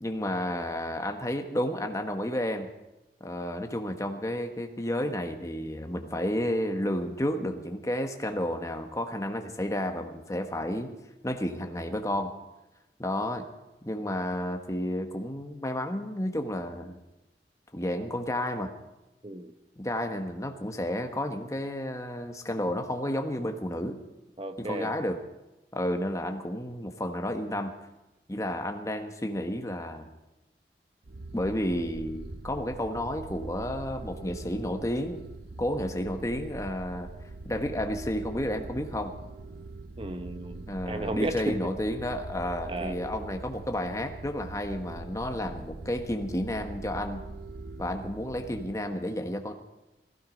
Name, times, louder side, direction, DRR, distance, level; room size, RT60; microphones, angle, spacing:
voice 1, 0.0-2.7 3.2-10.9 11.2-12.3 13.0-13.5 13.8-17.0 17.7-18.7 19.8-24.0 24.6-25.2 25.7-27.7 28.3-30.1 31.3-35.2 35.6-37.1 37.4-39.1 40.7-47.2 47.8-49.5, left 1 dB, 20° left, 5 dB, 1.2 m, -31 dB
voice 2, 19.2-19.5 24.4-24.9 40.0-41.6 42.7-43.0, right 2 dB, 30° right, 9 dB, 0.9 m, -34 dB
sound 1, 31.0-48.8, right 2 dB, 60° right, 0.7 m, -42 dB
17.0 x 15.0 x 5.2 m, 1.0 s
head